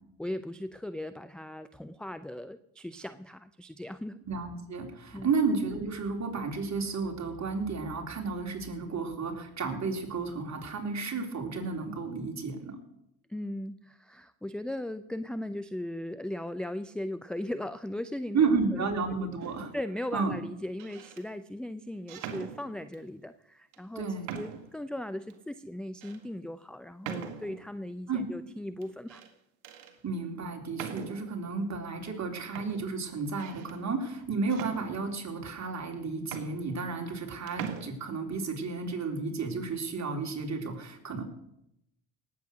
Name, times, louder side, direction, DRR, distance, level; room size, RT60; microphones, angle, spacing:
voice 1, 0.2-4.2 5.1-5.3 13.3-18.9 19.2-19.3 19.7-24.0 24.3-29.2, left 1 dB, ahead, 13 dB, 0.5 m, -38 dB
voice 2, 4.3-12.8 18.3-19.7 20.1-20.4 24.0-24.4 28.1-28.2 30.0-41.2, right 4 dB, 35° right, 2 dB, 3.7 m, -32 dB
sound 1, 19.4-19.8 20.6-21.2 22.1-23.1 23.7-23.8 24.3-24.8 25.3-25.4 26.0-26.2 27.0-27.7 28.8-29.3 29.6-29.9 30.7-31.4 32.2-32.3 32.5-33.8 34.5-35.4 35.9-36.0 36.2-37.2 37.5-37.8, right 8 dB, 75° right, 1.7 m, -42 dB
18.5 x 8.3 x 6.5 m, 0.81 s
hypercardioid pair, 60°, 45 cm